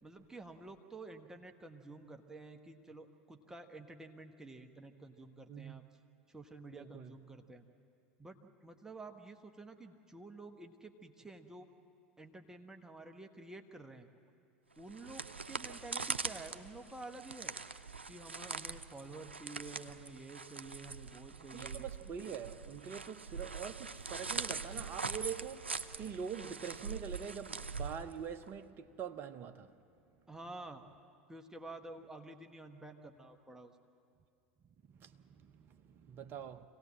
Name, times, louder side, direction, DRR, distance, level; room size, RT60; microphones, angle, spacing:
voice 1, 0.0-5.8 6.3-7.6 8.2-11.7 12.2-14.1 14.8-17.5 18.1-21.9 30.3-30.8 31.3-33.7, right 2 dB, 10° right, 1.2 m, -50 dB
voice 2, 5.5-5.8 6.7-7.1 21.5-25.7 26.0-29.7 35.0-36.7, right 7 dB, 40° right, 0.9 m, -44 dB
sound 1, 14.8-28.5, right 4 dB, 90° right, 0.5 m, -43 dB
25.5 x 17.5 x 7.6 m
figure-of-eight pair, 80°, 6 cm